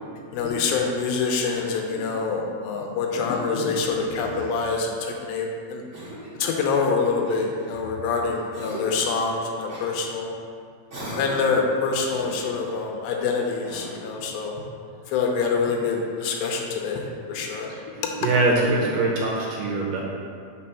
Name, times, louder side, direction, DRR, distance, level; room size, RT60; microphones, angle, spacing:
voice 1, 0.3-5.8 6.4-10.3 11.2-14.6 15.1-17.7, left 4 dB, 85° left, 1 dB, 2.4 m, -26 dB
Cough, 1.4-2.2 3.5-4.7 5.9-6.4 7.2-8.1 8.5-9.1 9.7-9.9 10.9-11.6 12.0-12.8 13.6-14.2, equal, 45° right, 0.9 m, -39 dB
voice 2, 18.2-20.0, right 2 dB, 75° right, -2 dB, 2.1 m, -23 dB
5.3 x 4.2 x 5.7 m, 2.2 s
omnidirectional pair, 4.3 m